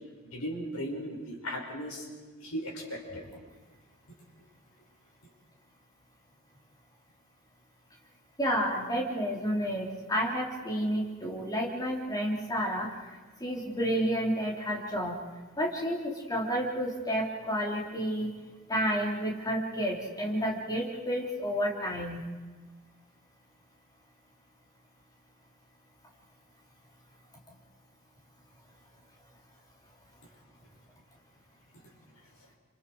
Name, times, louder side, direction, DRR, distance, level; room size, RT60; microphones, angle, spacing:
voice 1, 0.2-2.1 2.4-3.3 31.7-31.9, equal, 80° left, 0 dB, 5.4 m, -37 dB
voice 2, 8.4-12.9 13.4-15.1 15.6-16.0 16.3-18.3 18.7-22.2, equal, 15° left, -2 dB, 3.5 m, -30 dB
29.0 x 27.0 x 4.8 m, 1.4 s
head